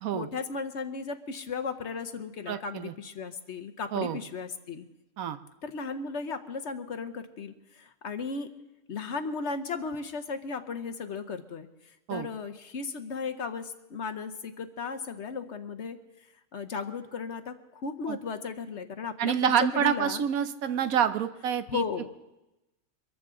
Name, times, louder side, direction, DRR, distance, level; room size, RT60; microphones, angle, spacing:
voice 1, 0.1-4.8 5.6-8.5 8.9-11.7 12.1-16.0 16.5-20.2 21.7-22.1, left 5 dB, 55° left, 8 dB, 1.1 m, -35 dB
voice 2, 2.5-2.9 3.9-4.2 5.2-5.4 12.1-12.3 18.1-18.2 19.2-21.8, right 8 dB, 75° right, 11 dB, 1.2 m, -27 dB
23.5 x 14.5 x 3.7 m, 0.98 s
omnidirectional pair, 1.5 m